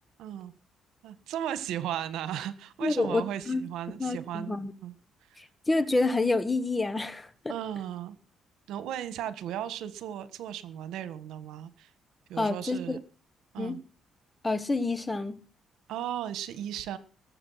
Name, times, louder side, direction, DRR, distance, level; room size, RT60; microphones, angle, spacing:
voice 1, 0.2-0.5 1.0-4.9 5.3-5.4 7.5-8.2 8.7-11.9 12.3-13.0 13.5-13.8 15.9-17.0, right 10 dB, 80° right, 1.6 m, -36 dB
voice 2, 2.8-3.6 4.0-4.7 5.4-7.5 12.4-13.0 13.6-13.8 14.4-15.4, left 2 dB, 15° left, 1.5 m, -28 dB
20.0 x 8.1 x 5.8 m
cardioid pair, 120°, 0 cm